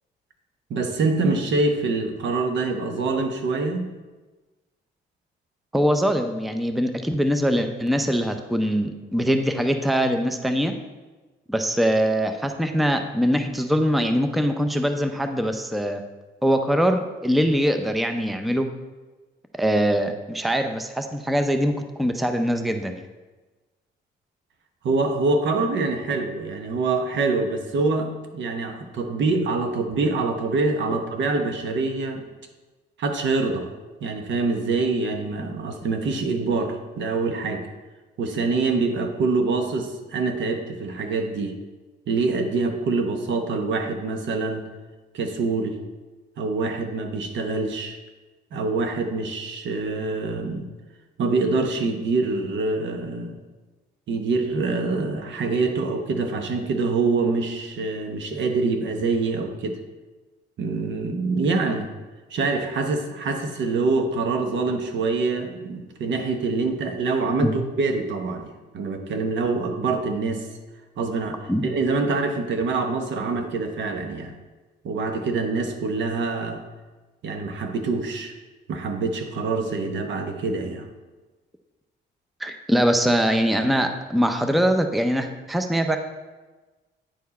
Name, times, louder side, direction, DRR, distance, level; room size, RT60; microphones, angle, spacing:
voice 1, 0.7-3.9 24.8-32.3 33.0-33.7 34.0-37.7 38.2-41.6 42.1-44.6 45.1-45.8 46.4-48.0 48.5-50.7 51.2-53.4 54.1-59.8 60.6-61.9 62.3-68.5 68.7-70.5 71.0-74.3 74.8-76.6 77.2-78.3 78.7-80.9, right 3 dB, 70° right, 5 dB, 1.0 m, -25 dB
voice 2, 5.7-10.7 11.5-16.0 16.4-18.7 19.5-21.7 22.0-23.0 67.4-67.5 71.5-71.7 82.4-86.0, equal, ahead, 6 dB, 0.5 m, -22 dB
9.1 x 4.6 x 4.2 m, 1.2 s
cardioid pair, 90°, 20 cm